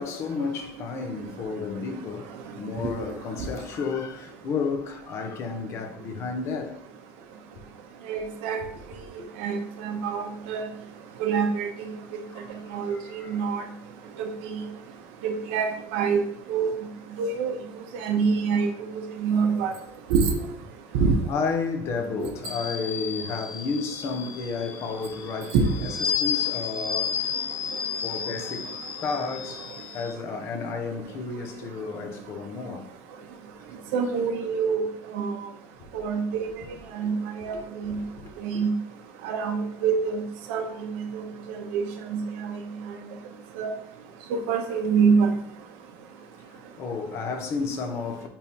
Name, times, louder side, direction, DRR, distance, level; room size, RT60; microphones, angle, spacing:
voice 1, 0.0-6.8 9.2-9.3 12.3-13.4 21.3-27.2 28.0-29.7 29.9-32.9 35.9-36.0 37.0-37.1 37.4-38.6 46.5-48.3, left 4 dB, 40° left, 0.9 m, -32 dB
voice 2, 8.1-8.6 9.4-10.6 11.2-11.7 12.7-13.6 14.2-14.6 15.2-16.2 16.5-16.7 17.2-17.6 17.9-18.7 19.2-19.7 20.1-20.4 20.9-21.2 22.2-22.3 25.5-25.7 33.9-34.8 35.1-35.3 35.9-36.5 36.9-37.6 37.8-38.0 38.4-38.7 39.2-40.2 40.5-40.7 41.0-41.1 41.7-42.6 43.6-43.7 44.3-45.4, right 5 dB, 80° right, 1.0 m, -25 dB
sound 1, 22.4-30.1, left 8 dB, 75° left, 0.9 m, -32 dB
8.7 x 3.6 x 3.0 m
cardioid pair, 165°, 7 cm